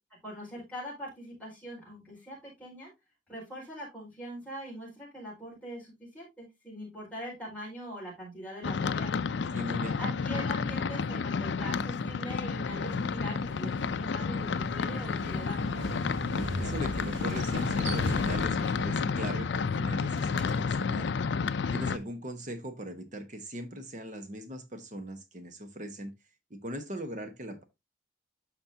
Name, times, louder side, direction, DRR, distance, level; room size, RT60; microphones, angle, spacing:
voice 1, 0.2-2.9 3.3-9.1 10.0-15.7, equal, 5° left, 4.6 m, -42 dB
sound 1, 8.6-22.0, left 5 dB, 65° left, 0.4 m, -31 dB
voice 2, 9.5-10.0 16.6-21.1 21.7-26.1 26.5-27.6, right 1 dB, 40° right, 1.1 m, -39 dB
Motorcycle, 12.6-21.0, right 1 dB, 70° right, 2.3 m, -40 dB
12.5 x 4.4 x 2.7 m
head